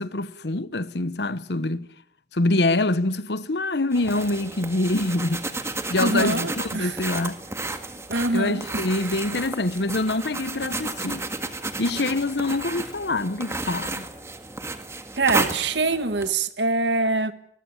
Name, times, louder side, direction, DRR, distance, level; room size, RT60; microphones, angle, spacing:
voice 1, 0.0-1.9 2.3-5.4 5.9-7.4 8.3-11.3 11.8-14.1, left 2 dB, 75° left, 1.1 m, -25 dB
sound 1, 3.9-16.3, right 2 dB, 15° right, 1.8 m, -32 dB
voice 2, 6.0-7.0 8.1-8.8 15.2-17.3, right 3 dB, 85° right, 1.7 m, -24 dB
24.0 x 20.5 x 8.0 m
head